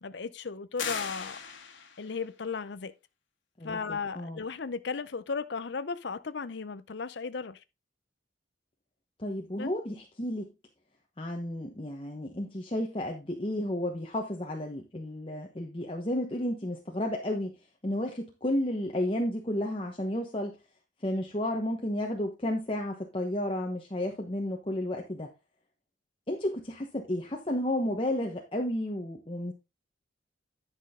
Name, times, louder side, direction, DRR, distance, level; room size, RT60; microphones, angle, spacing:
voice 1, 0.0-1.4 2.0-2.9 3.6-7.6 9.6-9.7, left 5 dB, 60° left, 0.6 m, -35 dB
sound 1, 0.8-2.2, left 6 dB, 85° left, 2.0 m, -37 dB
voice 2, 3.6-4.4 9.2-10.5 11.2-17.5 17.8-20.6 21.0-25.3 26.3-29.5, left 1 dB, 25° left, 1.0 m, -32 dB
10.5 x 6.1 x 3.6 m
head